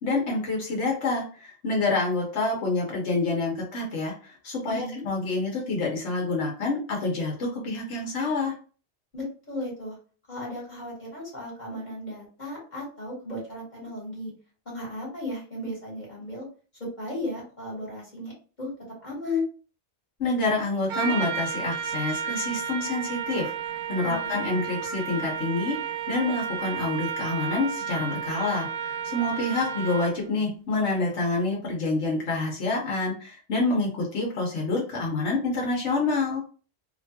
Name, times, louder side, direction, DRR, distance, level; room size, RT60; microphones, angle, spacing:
voice 1, 0.0-8.5 20.2-36.4, left 3 dB, 80° left, -2 dB, 1.2 m, -27 dB
voice 2, 4.7-5.0 9.1-10.0 10.3-14.3 14.6-16.4 17.0-18.3 18.6-18.7 19.0-19.4 24.0-24.4, left 2 dB, 40° left, -5 dB, 1.4 m, -35 dB
Trumpet, 20.9-30.2, right 7 dB, 90° right, 0.9 m, -32 dB
2.9 x 2.2 x 2.7 m, 0.38 s
omnidirectional pair, 1.2 m